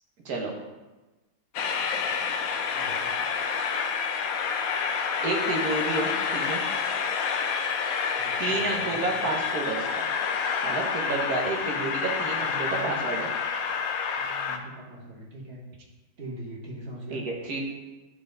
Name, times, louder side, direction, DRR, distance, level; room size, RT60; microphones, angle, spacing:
Train, 1.5-14.6, left 6 dB, 80° left, 0.7 m, -28 dB
voice 1, 2.7-3.1 8.1-9.3 11.7-11.9 12.4-13.0 14.2-15.6 16.2-17.2, right 1 dB, 35° right, -2 dB, 1.4 m, -42 dB
voice 2, 5.2-6.6 8.4-10.1 10.6-13.3 17.1-17.6, right 3 dB, 50° right, 0 dB, 1.6 m, -30 dB
11.0 x 4.8 x 3.9 m, 1.1 s
omnidirectional pair, 2.3 m